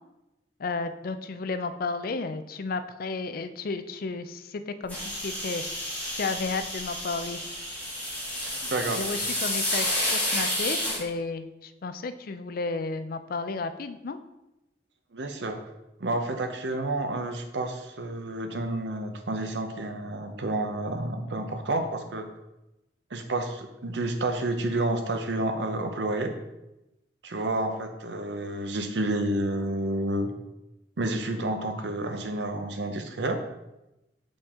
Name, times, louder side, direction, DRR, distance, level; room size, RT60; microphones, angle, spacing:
voice 1, 0.6-5.6 6.1-7.4 9.0-14.2, left 3 dB, 55° left, 10 dB, 0.4 m, -33 dB
sound 1, 4.9-11.0, left 1 dB, 10° left, 2.5 m, -30 dB
voice 2, 8.4-9.0 15.1-15.6 16.0-22.3 23.1-26.4 27.2-30.3 31.0-33.4, right 2 dB, 75° right, 6 dB, 0.8 m, -30 dB
7.0 x 5.3 x 3.6 m, 0.95 s
head